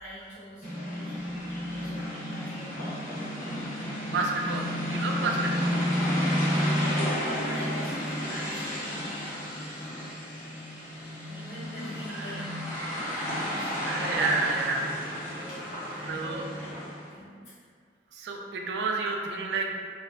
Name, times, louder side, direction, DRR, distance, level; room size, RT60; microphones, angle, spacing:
voice 1, 0.0-1.4 1.7-3.0 6.8-8.9 11.2-12.6 13.3-14.2 15.1-16.8 17.1-17.5, equal, 85° left, -9 dB, 0.9 m, -43 dB
sound 1, 0.6-17.1, equal, 50° left, 0.8 m, -31 dB
voice 2, 4.1-5.7 12.1-12.4 13.1-13.5 13.9-15.0 16.1-16.4 18.1-19.7, right 4 dB, 65° right, 1 dB, 0.3 m, -30 dB
2.5 x 2.1 x 2.4 m, 2.1 s
head